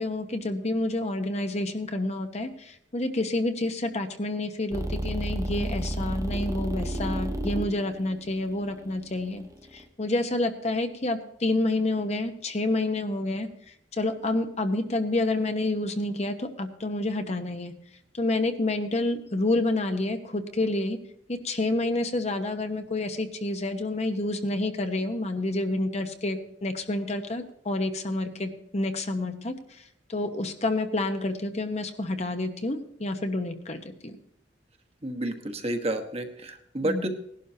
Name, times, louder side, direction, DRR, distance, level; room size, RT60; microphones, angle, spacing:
voice 1, 0.0-9.4 9.7-13.5 13.9-17.7 18.2-21.0 21.3-29.8 30.1-34.2 36.8-37.0, left 2 dB, 40° left, 7 dB, 1.1 m, -29 dB
sound 1, 4.7-9.8, right 1 dB, 20° right, 1.0 m, -32 dB
voice 2, 35.0-37.1, right 1 dB, 35° right, 4 dB, 1.3 m, -30 dB
18.5 x 11.5 x 2.8 m, 0.72 s
head